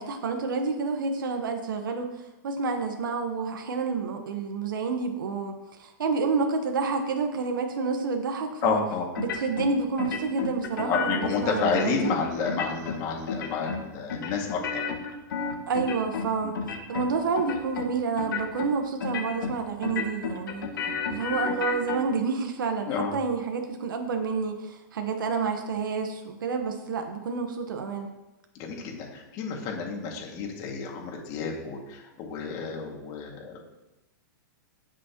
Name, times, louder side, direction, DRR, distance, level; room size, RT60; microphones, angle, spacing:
voice 1, 0.0-8.8 9.2-12.1 15.7-16.6 16.9-20.7 21.1-28.1, right 4 dB, 85° right, 4 dB, 1.3 m, -29 dB
voice 2, 8.6-9.1 10.8-15.0 16.4-16.6 20.9-21.0 22.9-23.1 28.5-33.6, left 5 dB, 35° left, 0 dB, 2.2 m, -30 dB
sound 1, 9.1-9.7 10.0-11.3 11.6-12.1 12.4-13.0 13.3-13.8 14.1-16.3 16.5-17.1 17.4-17.9 18.2-18.7 19.0-19.6 19.8-22.0, left 6 dB, 80° left, 1.8 m, -31 dB
18.0 x 6.2 x 3.0 m, 0.99 s
hypercardioid pair, 150°, 11 cm